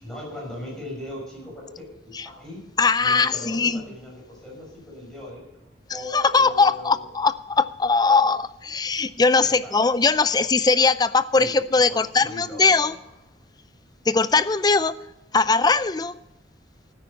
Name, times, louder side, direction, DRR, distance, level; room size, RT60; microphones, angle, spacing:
voice 1, 0.0-1.9 2.2-2.6 3.0-5.5 5.9-7.1 9.4-9.8 10.1-10.3 11.3-12.9, left 1 dB, 5° left, -4 dB, 5.9 m, -39 dB
voice 2, 2.8-3.8 6.1-12.9 14.1-14.9 15.3-16.1, left 4 dB, 20° left, 15 dB, 0.4 m, -20 dB
13.0 x 9.7 x 5.4 m, 0.96 s
head